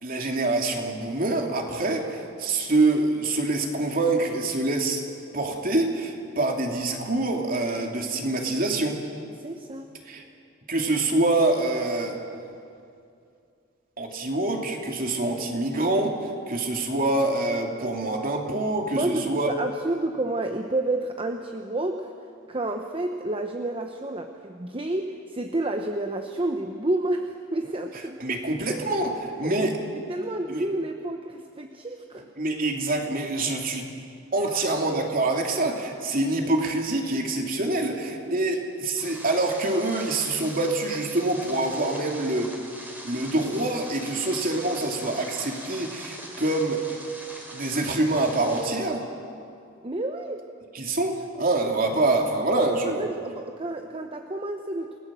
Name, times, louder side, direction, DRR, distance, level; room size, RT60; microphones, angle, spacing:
voice 1, 0.0-5.0 5.3-9.0 10.1-10.2 10.7-12.2 14.0-19.5 28.2-29.8 30.5-30.6 32.4-33.9 34.3-42.5 43.0-46.8 47.5-49.1 50.7-53.0, right 2 dB, 45° right, 2 dB, 2.9 m, -25 dB
voice 2, 9.4-9.9 18.9-22.1 22.5-28.4 28.7-28.8 29.4-32.2 34.4-34.7 38.3-38.4 49.8-50.5 52.9-55.0, right 2 dB, 25° right, 5 dB, 1.0 m, -30 dB
sound 1, 39.0-48.7, right 1 dB, 10° right, 3.3 m, -41 dB
29.0 x 19.0 x 7.6 m, 2.5 s
head